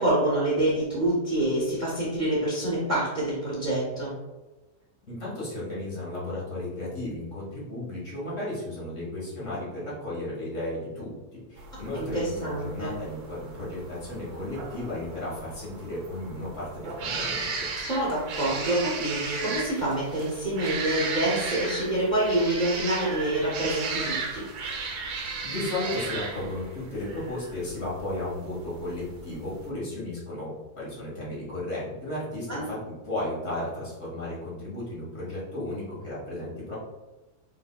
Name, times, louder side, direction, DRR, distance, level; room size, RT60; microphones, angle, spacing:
voice 1, 0.0-4.2 11.9-13.0 17.8-24.5 32.5-32.7, right 1 dB, 35° right, -5 dB, 0.9 m, -27 dB
voice 2, 5.1-17.7 25.4-32.8 33.0-36.8, left 1 dB, 50° left, -7 dB, 1.9 m, -34 dB
sound 1, 11.6-29.7, right 4 dB, 80° right, 1.5 m, -35 dB
4.8 x 4.1 x 2.2 m, 1.1 s
omnidirectional pair, 1.7 m